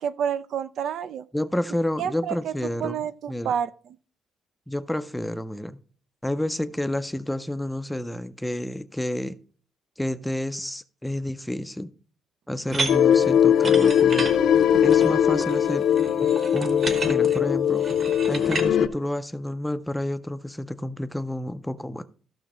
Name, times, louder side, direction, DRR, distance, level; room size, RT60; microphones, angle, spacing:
voice 1, 0.0-1.3 2.0-4.0, right 8 dB, 65° right, 0.4 m, -29 dB
voice 2, 1.3-3.0 3.3-3.5 4.7-5.8 6.2-9.4 10.0-11.9 12.5-14.3 14.8-15.9 16.5-17.9 18.3-22.0, left 1 dB, 5° left, 0.4 m, -29 dB
sound 1, 12.7-18.7, right 3 dB, 35° right, 1.2 m, -32 dB
sound 2, 12.9-18.9, left 9 dB, 70° left, 0.7 m, -20 dB
14.5 x 6.2 x 3.0 m
cardioid pair, 135°, 0 cm